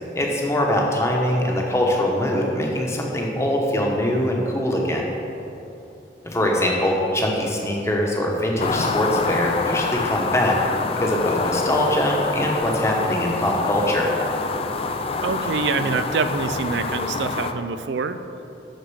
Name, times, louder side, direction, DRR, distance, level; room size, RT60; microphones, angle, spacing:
voice 1, 0.1-5.1 6.2-10.6 11.0-14.1, left 1 dB, 15° left, -1 dB, 1.0 m, -22 dB
sound 1, 8.6-17.5, left 4 dB, 30° left, 0.4 m, -26 dB
voice 2, 15.2-18.2, right 4 dB, 75° right, 10 dB, 0.4 m, -25 dB
6.6 x 6.4 x 6.2 m, 2.9 s
head